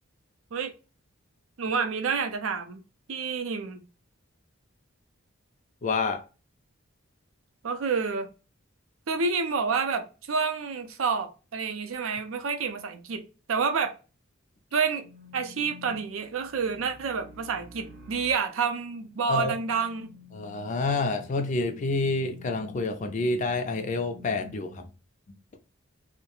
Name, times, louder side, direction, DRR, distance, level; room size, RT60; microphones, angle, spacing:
voice 1, 1.6-2.8 3.1-3.8 7.6-8.3 9.1-13.2 13.5-13.9 14.7-15.0 15.3-20.1, right 5 dB, 70° right, 0.5 m, -29 dB
voice 2, 5.8-6.2 19.3-19.5 20.3-24.8, left 3 dB, 35° left, 0.4 m, -28 dB
sound 1, 14.9-24.5, left 3 dB, 45° right, 0.8 m, -50 dB
2.3 x 2.1 x 2.9 m
head